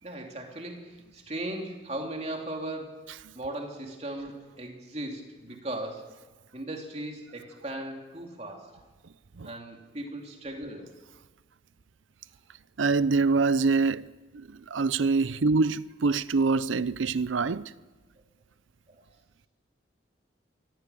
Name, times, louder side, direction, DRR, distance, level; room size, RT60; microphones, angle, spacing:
voice 1, 0.0-3.0 3.3-6.1 6.5-8.8 9.4-10.9 18.9-19.0, right 1 dB, 35° right, 2.9 m, -37 dB
voice 2, 12.8-14.1 14.3-17.7, right 4 dB, 80° right, 0.6 m, -25 dB
23.0 x 16.5 x 6.9 m
head